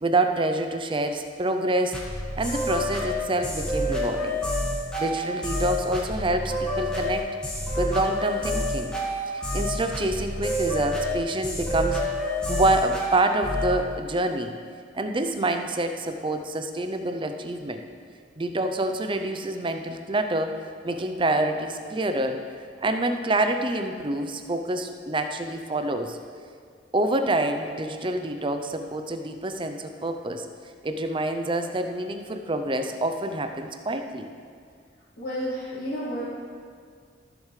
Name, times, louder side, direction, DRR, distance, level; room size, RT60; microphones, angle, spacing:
voice 1, 0.0-2.0 2.3-4.4 5.0-7.3 7.8-8.9 9.3-12.0 12.5-14.5 14.9-17.8 18.4-20.6 20.8-22.4 22.8-26.2 26.9-30.5 30.8-34.3, right 2 dB, 25° right, 6 dB, 0.6 m, -27 dB
sound 1, 1.9-13.8, left 1 dB, 5° left, 1.7 m, -28 dB
voice 2, 35.2-36.2, equal, 55° left, -11 dB, 2.2 m, -31 dB
15.0 x 7.3 x 3.3 m, 2.1 s
head